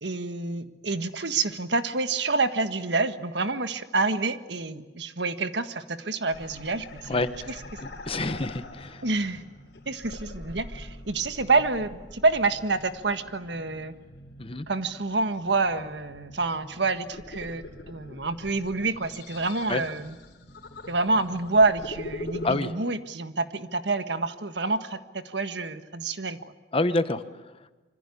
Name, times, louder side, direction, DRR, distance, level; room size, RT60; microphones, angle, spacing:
voice 1, 0.0-7.2 9.0-9.4 9.8-13.9 14.7-20.2 20.9-26.4, right 3 dB, 75° right, 9 dB, 1.6 m, -27 dB
sound 1, 6.3-22.5, left 1 dB, 65° left, 3.5 m, -43 dB
voice 2, 8.1-9.0 14.4-14.6 19.7-19.8 22.4-22.7 26.7-27.5, left 2 dB, 30° left, 11 dB, 1.2 m, -27 dB
26.0 x 25.0 x 8.5 m, 1.2 s
head